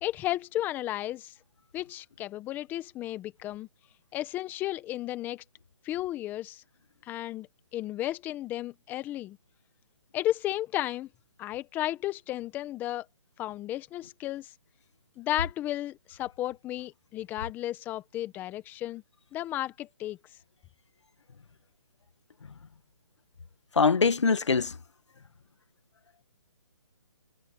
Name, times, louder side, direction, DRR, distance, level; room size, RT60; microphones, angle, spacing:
voice 1, 0.0-1.3 1.7-3.7 4.1-5.4 5.8-6.6 7.0-7.5 7.7-9.4 10.1-11.1 11.4-13.1 13.4-14.5 15.2-19.0 19.3-20.2, left 14 dB, 10° left, 1.2 m, -33 dB
voice 2, 23.8-24.7, left 5 dB, 75° left, 2.0 m, -23 dB
hypercardioid pair, 155°, 15 cm